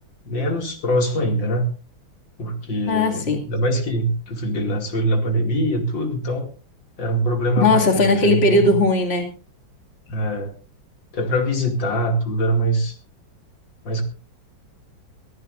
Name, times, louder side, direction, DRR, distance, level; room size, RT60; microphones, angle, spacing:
voice 1, 0.3-1.6 2.4-6.5 7.0-8.8 10.1-10.5 11.1-12.9 13.8-14.0, right 1 dB, 75° left, 3 dB, 3.1 m, -23 dB
voice 2, 2.9-3.4 7.6-9.3, left 2 dB, 30° left, 4 dB, 2.5 m, -18 dB
23.5 x 14.0 x 2.6 m, 0.33 s
omnidirectional pair, 2.1 m